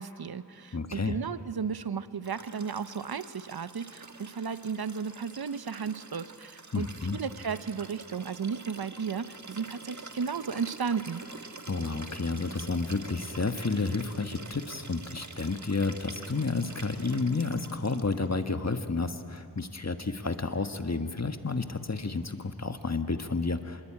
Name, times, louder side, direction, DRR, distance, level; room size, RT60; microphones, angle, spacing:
voice 1, 0.0-11.2, right 6 dB, 80° right, 13 dB, 0.8 m, -34 dB
voice 2, 0.7-1.2 6.7-7.2 11.7-23.8, left 3 dB, 45° left, 7 dB, 1.5 m, -31 dB
Liquid, 2.2-18.3 19.6-19.7, right 3 dB, 50° right, 1.5 m, -47 dB
27.0 x 21.0 x 8.8 m, 2.5 s
wide cardioid pair, 50°, 37 cm